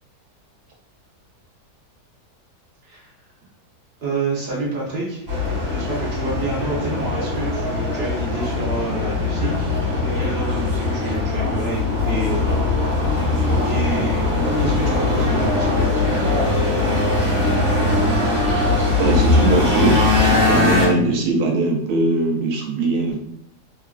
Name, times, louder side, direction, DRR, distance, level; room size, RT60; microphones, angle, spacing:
voice 1, 4.0-5.2 5.7-9.7 10.1-12.6 13.5-16.5, right 2 dB, 50° right, -4 dB, 0.8 m, -29 dB
sound 1, 5.3-20.9, left 2 dB, 30° right, 1.3 m, -20 dB
voice 2, 19.0-23.2, right 2 dB, 80° right, 1 dB, 1.2 m, -20 dB
3.0 x 2.4 x 2.3 m, 0.73 s
omnidirectional pair, 1.7 m